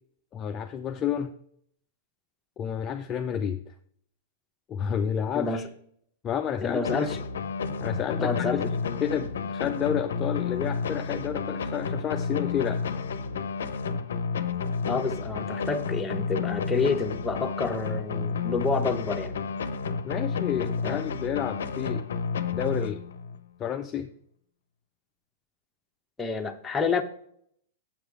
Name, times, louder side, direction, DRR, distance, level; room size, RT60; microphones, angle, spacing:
voice 1, 0.3-1.3 2.6-3.7 4.7-5.7 6.2-7.1 7.8-8.7 9.0-12.9 20.0-22.1 22.5-23.0 23.6-24.1, left 8 dB, 30° left, 6 dB, 0.5 m, -30 dB
voice 2, 6.6-7.2 8.2-8.6 14.9-19.3 20.8-21.0 26.2-27.0, left 4 dB, 15° left, 4 dB, 0.9 m, -28 dB
sound 1, 6.8-23.4, left 5 dB, 75° left, 0.6 m, -31 dB
7.2 x 4.9 x 4.6 m, 0.65 s
hypercardioid pair, 110°, 0 cm